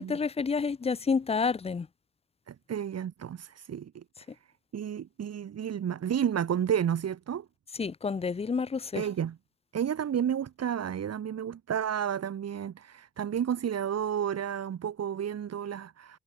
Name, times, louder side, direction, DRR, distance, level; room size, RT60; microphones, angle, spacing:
voice 1, 0.0-1.9 7.7-9.1, left 5 dB, 20° left, 0.6 m, -29 dB
voice 2, 2.5-4.0 4.7-7.5 9.0-9.4 9.7-16.2, right 9 dB, 55° right, 3.5 m, -31 dB
cardioid pair, 90°, 30 cm